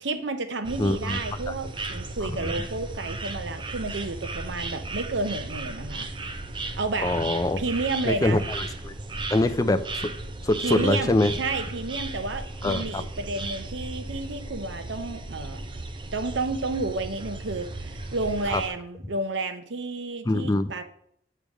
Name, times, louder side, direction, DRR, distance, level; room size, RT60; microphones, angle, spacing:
voice 1, 0.0-6.1 6.8-7.1 7.6-8.4 10.6-15.6 16.1-20.8, right 3 dB, 85° right, 9 dB, 0.8 m, -31 dB
sound 1, 0.6-18.7, right 2 dB, 25° right, 0.6 m, -35 dB
voice 2, 0.8-1.2 1.5-1.6 2.2-2.5 7.0-7.6 8.0-8.9 9.3-10.1 10.4-11.3 12.6-13.0 18.5-18.6 20.3-20.7, left 2 dB, 20° left, 9 dB, 0.5 m, -24 dB
8.8 x 3.3 x 6.4 m, 0.68 s
head